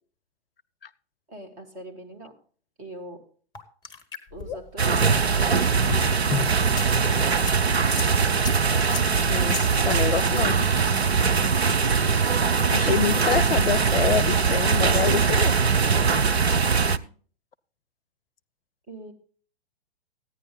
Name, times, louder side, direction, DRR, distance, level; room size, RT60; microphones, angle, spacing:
voice 1, 1.3-2.4 2.8-3.3 4.3-7.3 16.7-17.1 18.9-19.1, right 1 dB, 25° right, 3 dB, 2.6 m, -43 dB
sound 1, 3.5-6.9 7.3-9.9, left 6 dB, 15° left, 1.2 m, -34 dB
sound 2, 4.8-17.0, right 5 dB, 80° right, 0.6 m, -21 dB
voice 2, 9.8-10.7 12.7-15.6, left 8 dB, 65° left, 19 dB, 0.6 m, -26 dB
15.0 x 9.7 x 3.9 m, 0.43 s
figure-of-eight pair, 110°, 31 cm